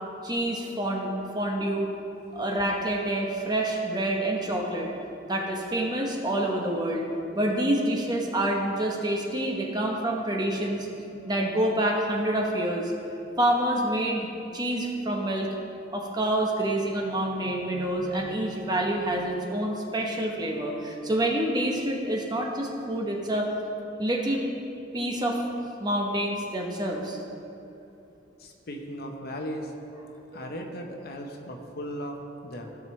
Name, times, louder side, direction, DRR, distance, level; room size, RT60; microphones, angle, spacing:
voice 1, 0.2-1.9 2.3-4.9 5.3-7.1 7.3-12.9 13.4-14.3 14.5-15.5 15.9-23.5 24.0-24.4 24.9-25.4 25.8-27.2, right 1 dB, 20° right, 0 dB, 1.0 m, -27 dB
voice 2, 28.4-29.7 30.3-32.8, equal, 55° left, 2 dB, 0.9 m, -37 dB
15.5 x 6.1 x 3.2 m, 2.9 s
head